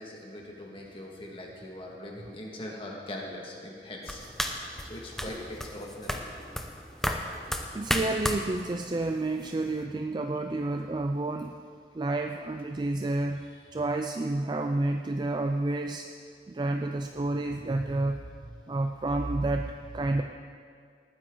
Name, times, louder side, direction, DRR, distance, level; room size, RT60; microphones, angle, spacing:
voice 1, 0.0-4.2 4.5-6.2, left 1 dB, 30° left, -1 dB, 1.8 m, -41 dB
sound 1, 4.0-9.8, equal, ahead, 0.7 m, -34 dB
voice 2, 7.7-11.5 11.9-13.4 13.7-16.1 16.5-18.2 18.7-20.2, right 2 dB, 25° right, 5 dB, 0.3 m, -30 dB
19.0 x 9.8 x 3.9 m, 2.2 s
head